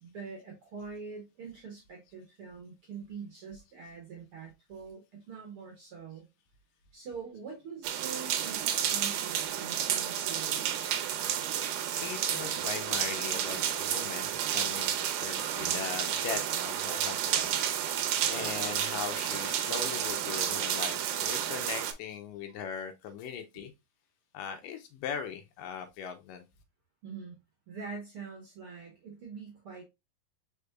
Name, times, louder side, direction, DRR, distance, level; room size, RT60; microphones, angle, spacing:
voice 1, 0.0-6.3 6.9-10.7 27.0-27.3 27.7-29.8, right 5 dB, 60° right, 1.5 m, -44 dB
sound 1, 7.8-21.9, right 10 dB, 75° right, 2.1 m, -31 dB
voice 2, 11.9-17.6 17.9-23.7 24.3-26.4, left 7 dB, 80° left, 2.2 m, -40 dB
5.1 x 4.5 x 2.2 m
omnidirectional pair, 4.0 m